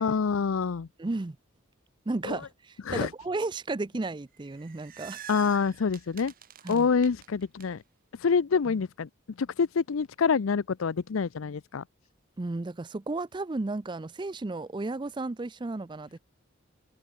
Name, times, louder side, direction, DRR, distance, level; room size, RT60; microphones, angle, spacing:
voice 1, 0.0-0.9 2.2-2.4 2.9-3.1 5.3-6.3 6.7-7.8 8.1-9.1 9.4-11.8, left 5 dB, 75° left, 0.5 m, -26 dB
voice 2, 1.0-1.4 2.1-5.2 6.6-6.9 8.7-8.8 12.4-16.2, right 2 dB, 20° right, 0.4 m, -33 dB
sound 1, 4.3-7.7, right 10 dB, 40° right, 1.3 m, -47 dB
head